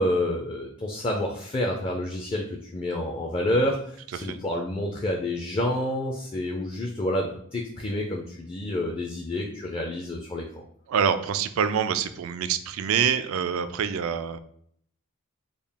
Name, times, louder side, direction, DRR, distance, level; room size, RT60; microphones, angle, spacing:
voice 1, 0.0-10.6, left 1 dB, 25° left, 0 dB, 0.4 m, -28 dB
voice 2, 10.9-14.4, right 7 dB, 80° right, 12 dB, 0.3 m, -26 dB
3.8 x 2.3 x 3.4 m, 0.65 s
head